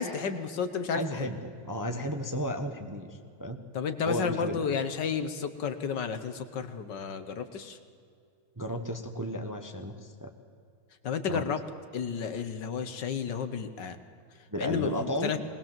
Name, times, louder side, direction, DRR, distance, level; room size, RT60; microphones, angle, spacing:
voice 1, 0.0-1.3 3.7-7.8 11.0-11.6 11.9-14.0 14.6-15.4, left 6 dB, 60° left, 9 dB, 1.6 m, -32 dB
voice 2, 0.9-3.1 3.4-3.6 4.0-4.6 8.6-9.9 10.2-10.3 11.3-11.4 14.5-15.3, equal, 15° right, 5 dB, 0.8 m, -33 dB
20.5 x 20.0 x 7.5 m, 2.3 s
omnidirectional pair, 2.3 m